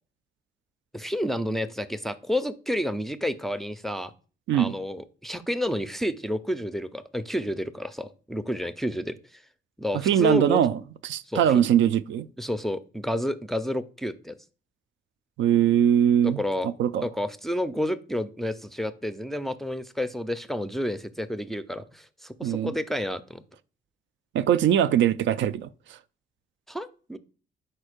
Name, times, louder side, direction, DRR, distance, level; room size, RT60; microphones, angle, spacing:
voice 1, 0.9-4.1 4.5-9.4 9.8-10.6 11.3-11.4 12.4-14.4 16.4-16.7 17.0-23.4 26.7-27.2, equal, ahead, 0.4 m, -30 dB
voice 2, 9.9-12.3 15.4-17.1 22.4-22.7 24.3-26.0, right 10 dB, 75° right, 0.4 m, -22 dB
4.5 x 4.3 x 4.9 m
cardioid pair, 90°, 20 cm